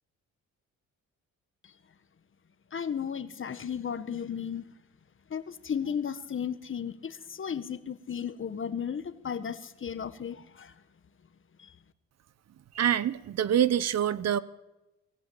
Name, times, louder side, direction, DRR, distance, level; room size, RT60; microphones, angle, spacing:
voice 1, 2.7-4.7 5.3-10.7, left 7 dB, 40° left, 11 dB, 1.7 m, -34 dB
voice 2, 12.7-14.4, right 10 dB, 60° right, 17 dB, 1.1 m, -25 dB
23.0 x 14.0 x 8.9 m, 0.97 s
cardioid pair, 90°, 30 cm